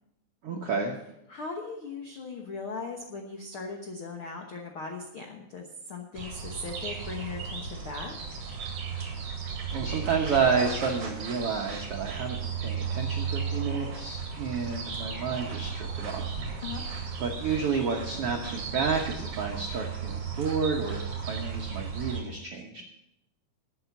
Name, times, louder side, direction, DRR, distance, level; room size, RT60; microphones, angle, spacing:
voice 1, 0.4-0.9 9.7-16.3 17.2-22.8, right 5 dB, 75° right, 0 dB, 1.3 m, -30 dB
voice 2, 1.3-8.1 16.6-16.8, left 4 dB, 85° left, 2 dB, 1.1 m, -38 dB
sound 1, 6.1-22.2, right 6 dB, 45° right, 2.6 m, -35 dB
12.0 x 7.7 x 7.0 m, 0.83 s
omnidirectional pair, 4.3 m